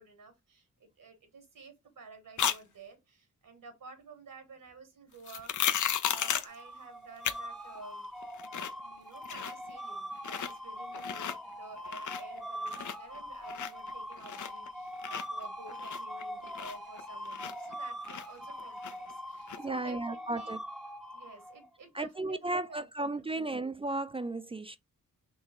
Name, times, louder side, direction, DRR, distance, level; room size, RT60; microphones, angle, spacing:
voice 1, 0.0-5.5 6.0-20.5 21.1-22.9 23.1-23.7, right 4 dB, 70° right, 1.3 m, -52 dB
sound 1, 2.4-2.6 5.3-6.6 7.2-7.4 7.8-7.9 8.2-8.8 9.1-9.7 10.2-10.5 10.9-11.4 11.8-12.4 12.7-14.7 15.0-17.7 18.0-19.1 19.5-19.6, left 9 dB, 60° left, 0.6 m, -34 dB
sound 2, 6.5-21.7, equal, ahead, 0.9 m, -42 dB
voice 2, 19.6-20.6 21.9-24.8, right 2 dB, 15° right, 0.3 m, -34 dB
3.7 x 3.1 x 3.6 m
cardioid pair, 55°, 34 cm